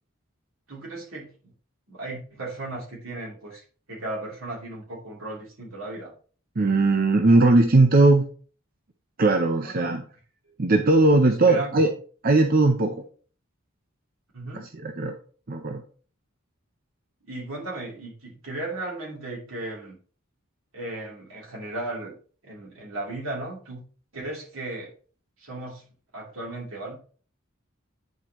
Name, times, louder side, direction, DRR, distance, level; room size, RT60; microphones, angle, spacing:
voice 1, 0.7-1.5 1.9-6.1 9.6-9.9 11.2-11.9 14.3-14.7 17.2-20.0 20.7-22.1 22.4-23.8 24.1-24.9 25.4-25.8 26.1-27.0, right 2 dB, 80° right, -3 dB, 3.0 m, -36 dB
voice 2, 6.6-8.3 9.2-10.0 10.6-11.9 12.2-13.0 14.5-15.2 15.5-15.8, right 2 dB, 45° right, 5 dB, 0.6 m, -19 dB
9.5 x 4.6 x 2.9 m, 0.41 s
head